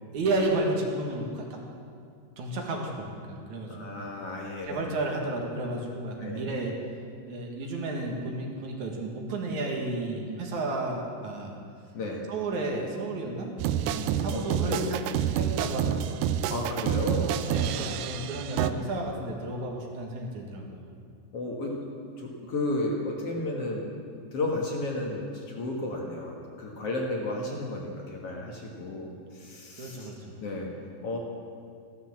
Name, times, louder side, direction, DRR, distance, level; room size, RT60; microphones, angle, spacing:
voice 1, 0.1-1.6 2.4-4.0 4.6-6.8 7.3-11.6 12.3-15.1 15.3-16.3 17.5-20.9 29.8-30.3, right 2 dB, 65° right, 0 dB, 2.9 m, -32 dB
voice 2, 3.7-4.8 6.2-6.4 11.9-12.2 14.3-14.8 16.5-17.4 17.9-18.1 21.3-21.7 22.2-23.9 24.3-30.1 30.4-30.7 31.0-31.2, left 2 dB, 50° left, -1 dB, 2.3 m, -33 dB
sound 1, 13.6-18.7, right 9 dB, 90° right, 2.3 m, -28 dB
14.5 x 12.0 x 7.3 m, 2.3 s
omnidirectional pair, 3.8 m